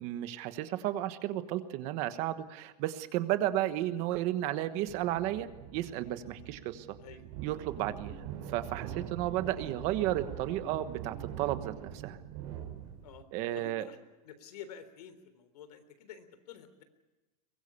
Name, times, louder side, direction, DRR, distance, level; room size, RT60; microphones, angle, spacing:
voice 1, 0.0-7.0 7.4-8.2 8.5-12.2 13.3-13.9, right 13 dB, 35° right, 11 dB, 1.3 m, -33 dB
sound 1, 4.9-13.2, right 9 dB, 50° right, 5.3 m, -43 dB
voice 2, 7.0-7.3 13.0-13.3 13.6-14.0 14.2-16.8, left 8 dB, 80° left, 11 dB, 3.7 m, -49 dB
23.5 x 21.0 x 6.9 m, 1.1 s
supercardioid pair, 175°, 20 cm